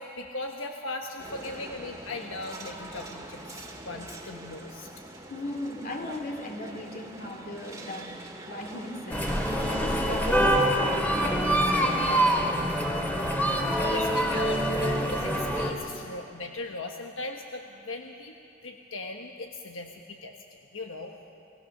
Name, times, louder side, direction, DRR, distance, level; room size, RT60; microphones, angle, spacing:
voice 1, 0.0-4.9 13.3-18.3 18.6-20.3 20.7-21.1, left 2 dB, 85° left, 3 dB, 1.3 m, -38 dB
sound 1, 1.2-10.8, right 2 dB, 15° right, 1.9 m, -44 dB
voice 2, 4.9-8.2 8.5-12.7, left 1 dB, 50° left, 3 dB, 2.7 m, -38 dB
sound 2, 9.1-15.7, equal, 10° left, 2.1 m, -25 dB
29.5 x 19.0 x 6.6 m, 2.6 s
head